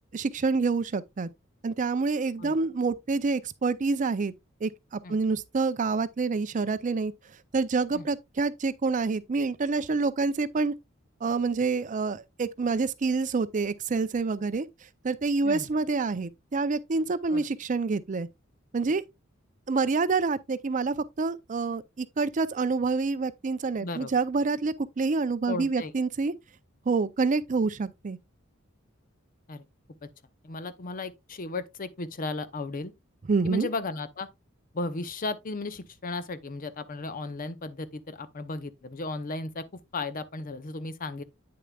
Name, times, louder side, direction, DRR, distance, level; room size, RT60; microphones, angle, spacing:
voice 1, 0.1-1.3 1.6-4.3 4.6-7.1 7.5-10.7 11.2-14.7 15.0-18.3 18.7-19.0 19.7-26.3 26.9-28.2 33.3-33.7, right 4 dB, 40° right, 0.5 m, -27 dB
voice 2, 23.8-24.2 25.5-25.9 29.5-29.6 30.0-30.1 30.4-32.9 33.4-34.3 34.7-41.2, left 3 dB, 45° left, 0.7 m, -35 dB
8.7 x 6.7 x 2.3 m
head